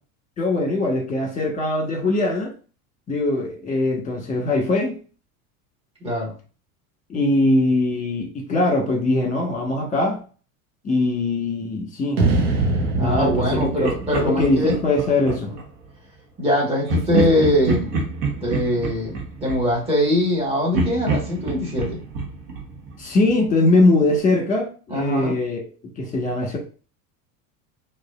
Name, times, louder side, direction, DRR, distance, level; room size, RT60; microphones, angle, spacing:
voice 1, 0.4-2.5 3.1-5.0 7.1-10.2 10.8-12.2 13.0-13.9 14.2-15.5 23.0-25.6 26.0-26.6, left 2 dB, 20° left, 1 dB, 1.4 m, -21 dB
voice 2, 6.0-6.3 13.0-14.8 16.4-17.9 18.4-22.0 24.9-25.3, left 1 dB, 15° right, -4 dB, 1.5 m, -22 dB
sound 1, 12.2-15.4, right 3 dB, 90° right, 1.0 m, -24 dB
Laughter, 13.5-15.7 16.9-20.4 20.7-23.5, right 3 dB, 60° right, 1.2 m, -27 dB
4.7 x 2.6 x 2.5 m, 0.38 s
supercardioid pair, 105°, 42 cm